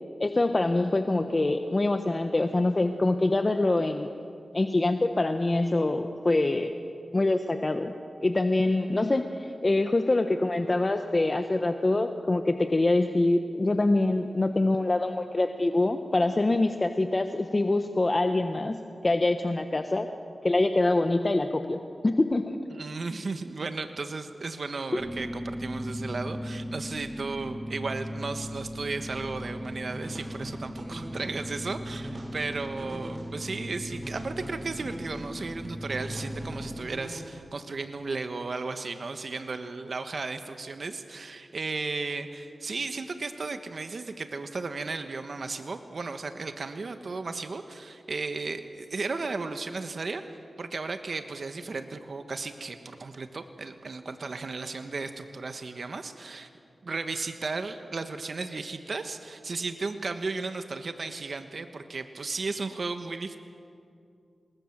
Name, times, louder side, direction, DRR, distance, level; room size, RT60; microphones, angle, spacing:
voice 1, 0.2-4.1 4.5-6.7 7.1-7.9 8.2-18.8 19.0-20.1 20.4-22.4, left 2 dB, 40° left, 7 dB, 1.2 m, -25 dB
voice 2, 22.7-50.2 50.6-56.5 56.8-63.4, right 3 dB, 65° right, 8 dB, 1.3 m, -35 dB
sound 1, 25.0-36.8, equal, ahead, 2.7 m, -37 dB
sound 2, 29.1-37.2, right 1 dB, 50° right, 6.3 m, -45 dB
27.0 x 20.5 x 7.5 m, 2.4 s
cardioid pair, 55°, 0 cm